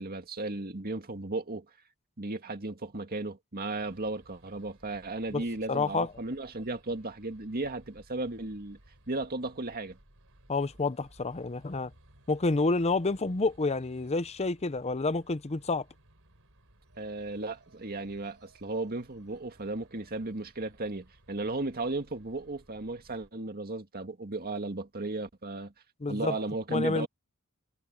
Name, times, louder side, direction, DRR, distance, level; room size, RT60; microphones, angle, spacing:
voice 1, 0.0-1.7 2.2-8.8 9.1-10.0 17.0-25.7 26.1-27.1, right 2 dB, 45° right, 2.0 m, -35 dB
sound 1, 3.8-23.3, right 1 dB, 65° right, 5.3 m, -60 dB
voice 2, 5.3-6.1 10.5-11.9 12.3-15.8 26.0-26.3 26.7-27.1, left 3 dB, 30° left, 0.7 m, -29 dB
head